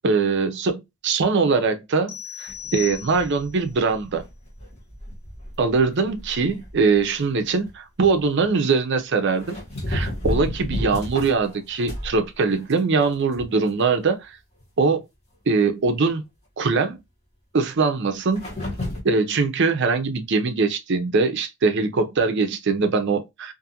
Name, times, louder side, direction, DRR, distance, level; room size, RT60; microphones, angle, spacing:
voice 1, 0.0-4.2 5.6-9.5 9.9-14.4 14.8-15.0 15.5-16.2 16.6-17.0 17.5-18.4 19.0-23.5, right 4 dB, 55° right, 0.5 m, -22 dB
sound 1, 2.1-3.6, left 10 dB, 55° left, 0.7 m, -36 dB
sound 2, 2.5-7.0 7.5-7.7 8.0-8.5 9.4-12.2 12.5-13.7 14.0-14.1 14.6-14.7 18.3-19.0, left 1 dB, 30° left, 1.1 m, -32 dB
2.5 x 2.4 x 2.7 m
head